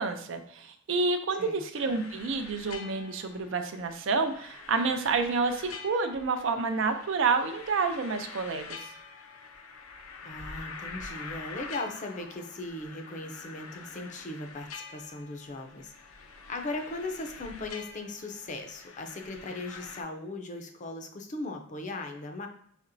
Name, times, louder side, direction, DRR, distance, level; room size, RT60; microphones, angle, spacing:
voice 1, 0.0-8.8, right 4 dB, 65° right, 7 dB, 0.4 m, -29 dB
sound 1, 1.8-20.0, left 4 dB, 85° left, 0.5 m, -46 dB
voice 2, 10.2-15.9 16.5-22.5, left 2 dB, 40° left, 5 dB, 0.5 m, -38 dB
4.2 x 2.9 x 2.6 m, 0.66 s
head